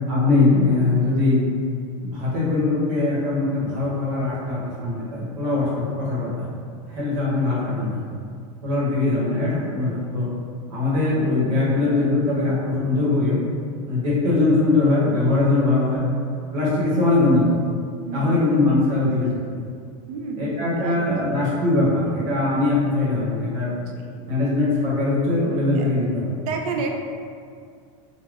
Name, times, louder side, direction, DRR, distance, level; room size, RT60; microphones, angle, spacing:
voice 1, 0.1-1.4 2.0-6.5 6.9-8.0 8.6-10.3 10.7-13.4 13.9-16.0 16.5-17.6 18.1-19.3 20.4-23.7 24.3-26.3, left 2 dB, 65° right, -6 dB, 0.9 m, -21 dB
voice 2, 18.1-18.5 20.1-21.4 23.7-24.3 25.7-25.9 26.4-26.9, right 4 dB, 80° right, 2 dB, 0.4 m, -32 dB
3.3 x 2.1 x 2.4 m, 2.2 s
supercardioid pair, 165°, 18 cm